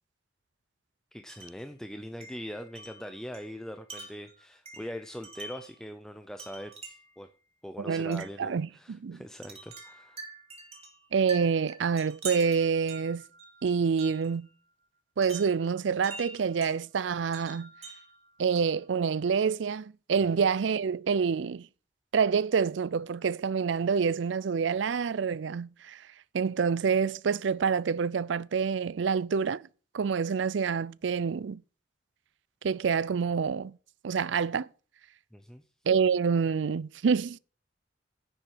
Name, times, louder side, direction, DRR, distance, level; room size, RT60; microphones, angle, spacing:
voice 1, 1.1-7.3 7.6-10.2 35.3-35.6, equal, 5° left, 0.6 m, -42 dB
Wind chime, 1.3-1.7 2.2-5.8 6.4-7.2 8.1-8.4 9.4-14.4 15.2-16.8 17.3-18.9, right 3 dB, 35° right, 2.5 m, -45 dB
voice 2, 7.8-9.2 11.1-13.2 13.6-14.5 15.2-17.7 18.4-21.7 22.1-26.0 26.3-29.7 29.9-31.6 32.6-33.8 34.0-34.7 35.9-37.4, right 6 dB, 80° right, 0.4 m, -27 dB
10.0 x 7.5 x 6.4 m
head